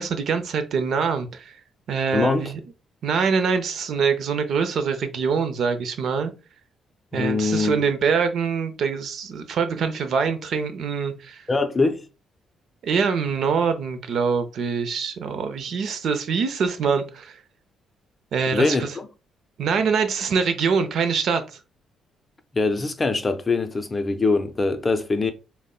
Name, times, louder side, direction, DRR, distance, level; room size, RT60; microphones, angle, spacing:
voice 1, 0.0-1.5 1.9-2.6 3.0-6.3 7.1-11.4 12.8-17.4 18.3-18.9 19.6-21.4, right 5 dB, 65° right, 0.5 m, -24 dB
voice 2, 2.1-2.5 7.1-7.8 11.5-12.0 18.5-19.1 22.5-25.3, left 3 dB, 25° left, 0.5 m, -23 dB
5.0 x 2.1 x 2.3 m
cardioid pair, 90°, 0 cm